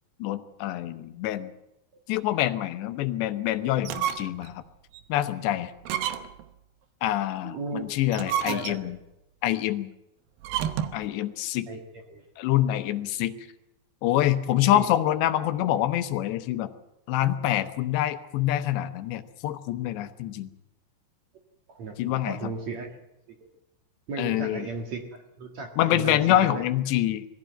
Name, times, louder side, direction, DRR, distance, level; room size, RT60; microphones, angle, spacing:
voice 1, 0.2-1.5 2.1-4.6 5.1-5.7 7.0-9.0 9.4-9.9 10.9-11.7 12.4-13.3 14.0-16.7 17.1-20.5 22.0-22.5 24.2-24.7 25.8-27.3, left 13 dB, 80° left, 11 dB, 3.1 m, -26 dB
sound 1, 3.8-4.5 4.9-5.0 5.8-6.5 8.0-9.0 10.4-11.1, right 9 dB, 70° right, 2.5 m, -30 dB
voice 2, 7.4-7.9 8.5-8.9 11.7-11.8 12.1-12.2 12.9-13.0 14.7-14.9 21.7-22.9 24.1-25.0 25.4-26.6, right 4 dB, 50° right, 4 dB, 2.4 m, -35 dB
21.5 x 15.5 x 9.0 m, 0.88 s
omnidirectional pair, 5.1 m